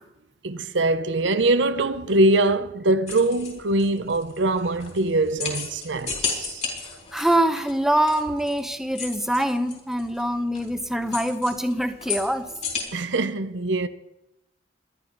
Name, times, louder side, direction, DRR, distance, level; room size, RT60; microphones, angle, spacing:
voice 1, 0.4-6.6 12.9-13.9, right 2 dB, 75° right, 0.8 m, -23 dB
sound 1, 3.1-12.8, left 5 dB, 40° left, 4.5 m, -34 dB
voice 2, 7.1-12.5, right 1 dB, ahead, 0.8 m, -24 dB
22.0 x 11.5 x 4.0 m
head